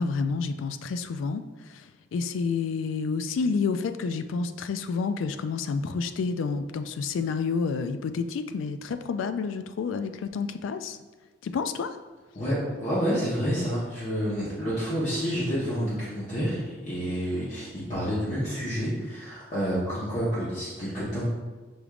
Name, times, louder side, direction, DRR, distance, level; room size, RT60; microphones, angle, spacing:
voice 1, 0.0-11.0 11.4-12.0, left 5 dB, 85° left, 9 dB, 0.3 m, -29 dB
voice 2, 12.3-21.2, equal, 40° left, -10 dB, 1.0 m, -29 dB
6.1 x 3.4 x 2.4 m, 1.3 s
head